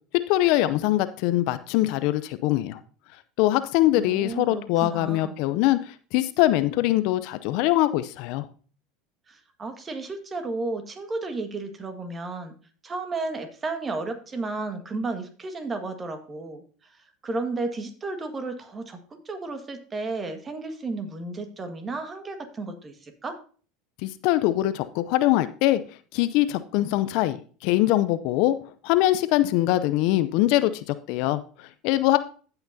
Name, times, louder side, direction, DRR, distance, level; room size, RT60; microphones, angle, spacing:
voice 1, 0.3-2.8 3.4-8.5 24.0-25.8 26.1-27.4 27.6-28.6 28.8-32.2, left 15 dB, 65° left, 13 dB, 0.5 m, -23 dB
voice 2, 4.0-5.3 9.3-12.5 12.8-16.6 16.9-23.4, right 3 dB, 30° right, 7 dB, 1.6 m, -33 dB
15.5 x 5.9 x 2.7 m, 0.41 s
hypercardioid pair, 85°, 0 cm